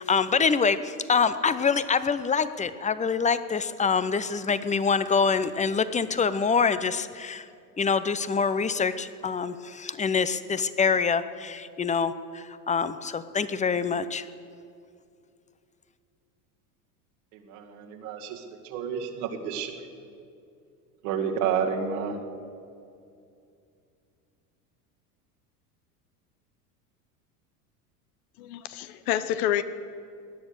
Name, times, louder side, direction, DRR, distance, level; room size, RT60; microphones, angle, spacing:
voice 1, 0.0-7.5 7.8-14.3, left 5 dB, 15° left, 14 dB, 0.7 m, -25 dB
voice 2, 17.5-19.7 21.0-22.2, right 7 dB, 65° right, 2 dB, 2.1 m, -30 dB
voice 3, 28.4-29.6, left 11 dB, 65° left, 12 dB, 1.0 m, -28 dB
18.0 x 10.5 x 6.6 m, 2.4 s
hypercardioid pair, 80°, 46 cm